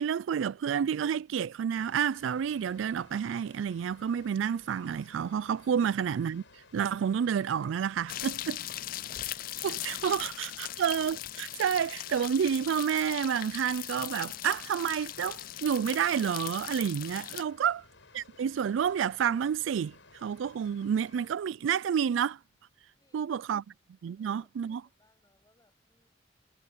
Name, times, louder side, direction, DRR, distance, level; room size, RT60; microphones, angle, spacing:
voice 1, 0.0-6.4 6.7-8.6 9.6-17.8 18.1-20.0 20.2-22.4 23.1-23.6 24.0-24.8, right 8 dB, 90° right, 0.3 m, -29 dB
Water, 1.7-21.4, left 3 dB, 85° left, 5.7 m, -58 dB
sound 1, 8.1-17.4, left 13 dB, 50° left, 0.4 m, -39 dB
voice 2, 17.4-17.8 22.9-26.1, left 1 dB, 20° left, 7.7 m, -71 dB
head